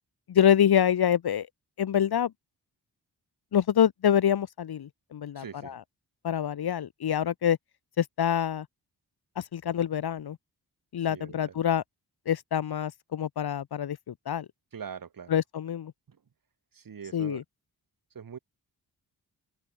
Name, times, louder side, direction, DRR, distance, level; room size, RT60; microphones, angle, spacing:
voice 1, 0.3-1.5 1.8-2.3 3.5-5.8 6.2-7.6 8.0-8.7 9.4-10.4 10.9-11.8 12.3-14.5 15.3-15.9 17.1-17.4, left 9 dB, 70° left, 1.2 m, -26 dB
voice 2, 5.3-5.8 11.1-11.6 14.7-15.4 16.1-16.2 16.7-17.4 18.1-18.4, right 7 dB, 55° right, 2.9 m, -42 dB
open air
wide cardioid pair, 160°, 39 cm